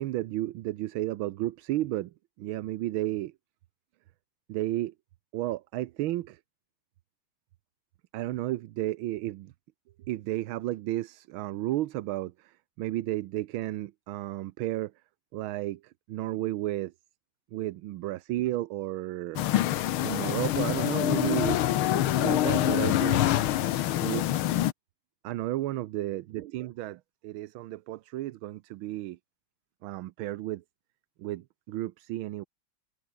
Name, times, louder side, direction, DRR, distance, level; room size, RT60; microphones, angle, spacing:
voice 1, 0.0-3.3 4.5-4.9 5.3-6.4 8.1-9.5 10.1-14.9 15.3-16.9 17.5-19.5 20.0-23.2 24.0-24.5 25.2-29.2 29.8-30.6 31.2-32.4, right 15 dB, 75° right, 1.5 m, -33 dB
sound 1, 19.4-24.7, left 13 dB, 80° left, 1.7 m, -25 dB
open air
omnidirectional pair, 2.3 m